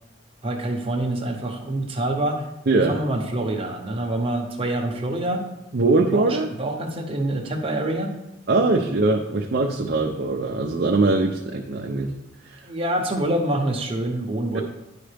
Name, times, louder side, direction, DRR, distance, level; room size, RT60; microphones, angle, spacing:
voice 1, 0.4-2.5 2.9-5.5 6.1-8.1 12.6-14.6, right 1 dB, 25° right, 1 dB, 0.9 m, -26 dB
voice 2, 2.7-3.0 5.7-6.5 8.5-12.1 12.4-12.6 14.5-14.6, right 3 dB, 50° right, 1 dB, 0.5 m, -21 dB
10.0 x 5.0 x 3.4 m, 0.94 s
head